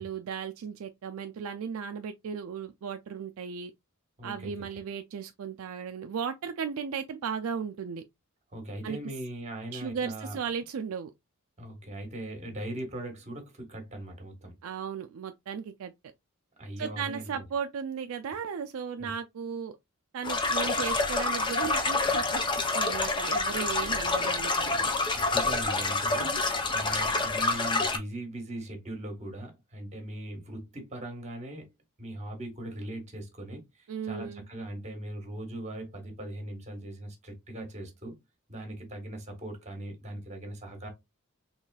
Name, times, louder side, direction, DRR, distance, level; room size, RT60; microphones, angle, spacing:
voice 1, 0.0-3.7 4.2-8.0 8.8-9.0 9.7-11.1 14.6-15.9 16.8-19.7 20.1-24.8 26.1-26.4 33.9-34.5, right 6 dB, 70° right, 0.4 m, -36 dB
voice 2, 4.2-4.5 8.5-10.4 11.6-14.5 16.6-17.5 19.0-19.1 24.7-26.3 26.7-31.7 32.0-38.2 38.5-40.9, right 1 dB, 30° right, 1.3 m, -40 dB
sound 1, 20.2-28.0, left 3 dB, 20° left, 0.5 m, -27 dB
4.0 x 3.0 x 2.3 m
head